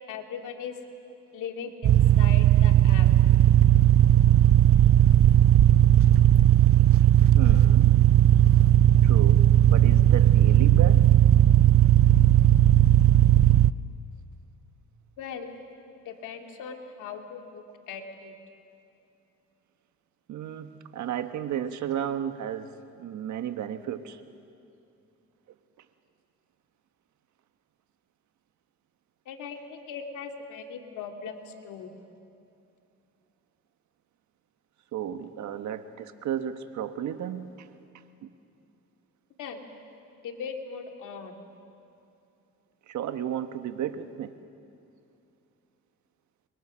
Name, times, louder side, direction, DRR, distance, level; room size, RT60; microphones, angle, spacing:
voice 1, 0.1-0.7 1.3-3.1 15.2-15.5 16.1-18.3 29.3-31.9 39.4-39.7 40.2-41.3, left 6 dB, 85° left, 3 dB, 2.4 m, -39 dB
sound 1, 1.8-13.7, right 12 dB, 50° right, 0.6 m, -17 dB
voice 2, 7.3-7.9 9.0-11.1 20.3-22.7 23.0-24.2 34.9-37.7 38.2-38.3 42.9-44.3, right 9 dB, 70° right, 9 dB, 1.3 m, -33 dB
28.5 x 23.5 x 6.3 m, 2.7 s
cardioid pair, 90°, 30 cm